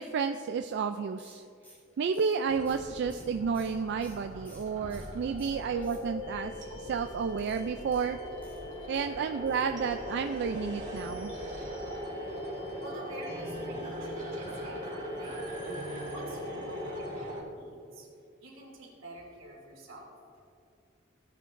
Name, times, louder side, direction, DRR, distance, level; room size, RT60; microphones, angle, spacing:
voice 1, 0.0-1.4 2.0-6.5 6.8-8.2 8.9-11.3, right 6 dB, 55° right, 7 dB, 0.3 m, -31 dB
sound 1, 1.2-5.1 5.4-6.4 7.3-9.1 9.5-9.8 10.0-10.1 10.4-10.5, equal, 10° left, 2.2 m, -57 dB
sound 2, 2.5-17.4, equal, 40° right, 2.2 m, -40 dB
sound 3, 6.2-17.1, left 5 dB, 90° left, 0.6 m, -46 dB
voice 2, 12.8-18.1 18.4-20.1, right 1 dB, 85° right, -2 dB, 2.6 m, -48 dB
15.5 x 9.4 x 2.6 m, 2.4 s
head